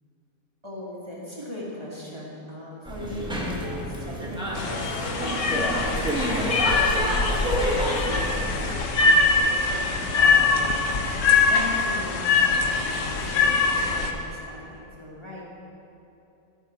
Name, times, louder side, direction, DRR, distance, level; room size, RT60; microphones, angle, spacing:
voice 1, 0.6-6.3 6.7-10.8 11.3-15.4, equal, 20° right, -6 dB, 1.6 m, -39 dB
sound 1, 2.8-8.8, equal, 5° right, 1.0 m, -29 dB
sound 2, 4.5-14.1, left 4 dB, 65° left, 1.1 m, -23 dB
13.0 x 6.1 x 5.4 m, 2.8 s
omnidirectional pair, 1.5 m